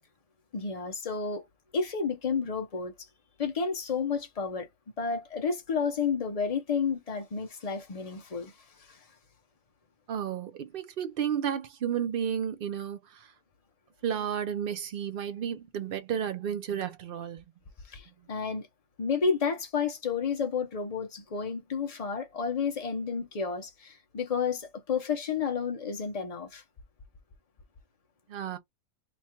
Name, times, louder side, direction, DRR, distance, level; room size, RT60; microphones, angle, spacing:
voice 1, 0.5-1.5 1.7-3.1 3.4-4.7 5.0-9.0 17.9-18.7 19.0-26.6, left 5 dB, 40° left, 0.5 m, -31 dB
voice 2, 10.1-13.3 14.0-17.4 28.3-28.6, right 8 dB, 65° right, 0.5 m, -32 dB
3.0 x 2.3 x 4.3 m
omnidirectional pair, 1.5 m